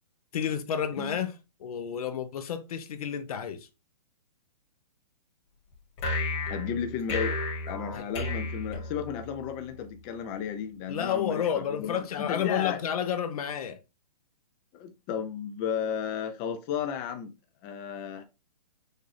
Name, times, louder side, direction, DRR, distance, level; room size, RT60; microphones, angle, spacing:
voice 1, 0.3-1.3 1.6-3.7 7.9-8.0 10.9-13.8, left 8 dB, 60° left, 0.9 m, -31 dB
sound 1, 6.0-9.4, left 2 dB, 40° left, 2.0 m, -32 dB
voice 2, 6.5-7.4 7.7-12.8 14.7-17.3 17.6-18.2, left 7 dB, 25° left, 0.4 m, -33 dB
6.3 x 2.5 x 3.3 m
hypercardioid pair, 145°, 21 cm